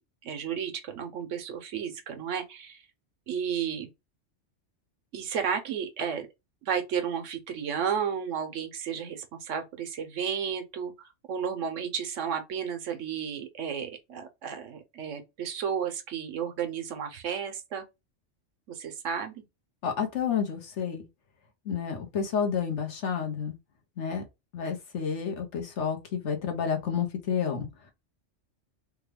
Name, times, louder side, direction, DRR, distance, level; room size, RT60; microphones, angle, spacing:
voice 1, 0.2-2.8 3.3-3.9 5.1-6.3 6.6-17.9 18.7-19.4, right 7 dB, 85° right, 1.1 m, -33 dB
voice 2, 19.8-21.0 21.7-23.5 24.0-24.2 24.5-27.7, left 7 dB, 70° left, 1.2 m, -30 dB
3.4 x 2.2 x 3.3 m
omnidirectional pair, 1.3 m